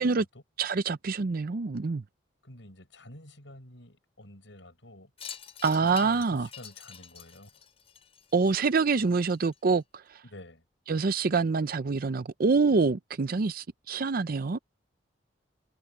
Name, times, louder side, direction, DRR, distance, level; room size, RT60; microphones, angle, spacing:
voice 1, 0.0-0.4 2.4-5.1 5.8-7.6 8.5-8.6 9.0-9.1 10.2-10.6, left 1 dB, 75° left, 7.6 m, -50 dB
voice 2, 0.6-2.0 5.6-6.5 8.3-9.8 10.9-14.6, right 4 dB, 50° right, 0.5 m, -26 dB
Wind chime, 5.2-9.8, left 8 dB, 35° left, 4.3 m, -47 dB
head